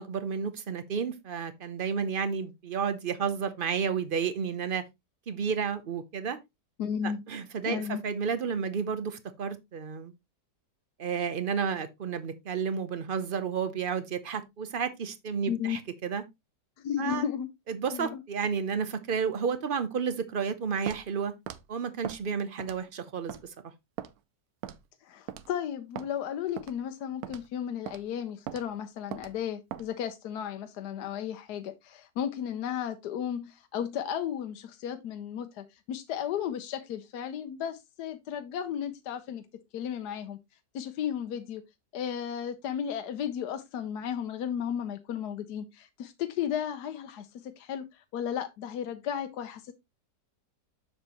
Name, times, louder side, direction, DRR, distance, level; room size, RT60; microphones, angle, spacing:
voice 1, 0.0-4.8 5.3-6.4 7.0-10.1 11.0-16.2 17.0-17.3 17.7-21.4 21.7-23.5, right 6 dB, 50° right, 0.6 m, -31 dB
voice 2, 6.8-7.2 7.7-8.0 15.5-15.8 16.8-17.5 17.9-18.2 25.0-39.4 39.7-40.4 40.7-41.6 41.9-49.7, left 9 dB, 70° left, 1.2 m, -34 dB
Walk footsteps, 20.9-21.1 21.5-21.6 22.0-22.2 22.6-22.9 23.3-23.4 24.0-24.1 24.6-24.9 25.3-25.5 26.0-26.1 26.6-26.8 27.2-27.5 27.9-28.0 28.5-28.6 29.1-29.3 29.7-29.9, right 10 dB, 70° right, 1.1 m, -39 dB
7.2 x 6.4 x 3.0 m
omnidirectional pair, 1.8 m